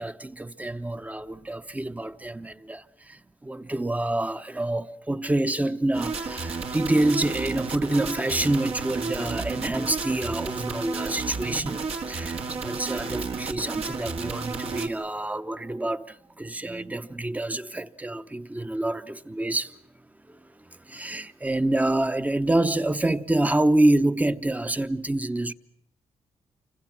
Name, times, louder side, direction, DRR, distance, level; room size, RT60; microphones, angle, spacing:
voice 1, 0.0-19.8 20.3-25.5, right 1 dB, 15° right, 0.9 m, -27 dB
sound 1, 5.9-14.9, right 4 dB, 65° right, 2.1 m, -32 dB
28.5 x 25.5 x 6.1 m
cardioid pair, 75°, 11 cm